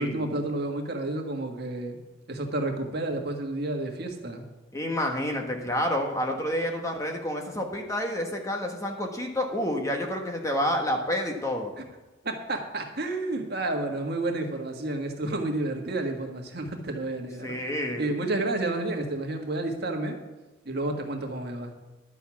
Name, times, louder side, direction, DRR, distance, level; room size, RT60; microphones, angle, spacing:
voice 1, 0.0-2.0 2.3-4.4 11.8-11.9 12.2-17.7 18.0-20.2 20.6-21.7, right 2 dB, 55° right, 3 dB, 1.6 m, -30 dB
voice 2, 4.7-11.7 17.4-18.1, left 1 dB, 15° left, 2 dB, 1.3 m, -29 dB
11.0 x 7.1 x 7.1 m, 1.1 s
head